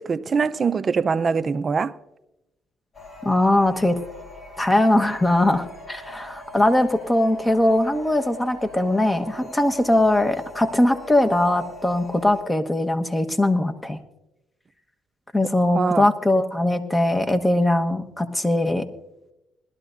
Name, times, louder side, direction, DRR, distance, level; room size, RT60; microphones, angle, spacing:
voice 1, 0.0-1.9 15.7-16.1, right 5 dB, 45° right, 0.6 m, -23 dB
sound 1, 2.9-12.4, left 1 dB, 40° left, 3.7 m, -42 dB
voice 2, 3.2-4.0 4.6-14.0 15.3-18.8, left 1 dB, 15° left, 1.2 m, -21 dB
20.5 x 12.5 x 2.6 m
supercardioid pair, 70°, 0 cm